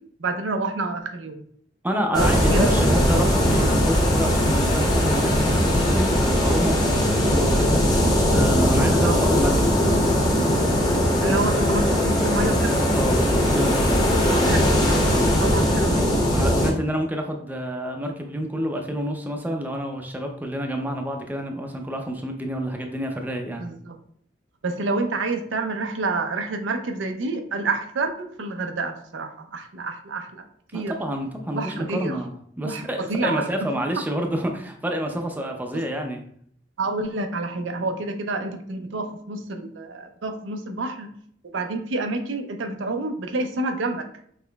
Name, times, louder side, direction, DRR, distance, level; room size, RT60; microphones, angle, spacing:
voice 1, 0.2-1.4 2.1-2.7 9.0-9.2 11.2-12.8 14.1-16.3 23.6-24.0 24.6-30.4 30.7-30.9 31.5-32.2 32.6-33.5 35.7-35.8 36.8-41.1 41.5-44.1, right 3 dB, 90° right, 6 dB, 0.6 m, -28 dB
voice 2, 1.8-9.8 12.9-14.0 16.3-23.7 30.7-36.2, equal, 10° right, 3 dB, 0.5 m, -28 dB
sound 1, 2.1-16.7, equal, 20° left, 0.9 m, -20 dB
5.7 x 3.0 x 2.2 m, 0.63 s
head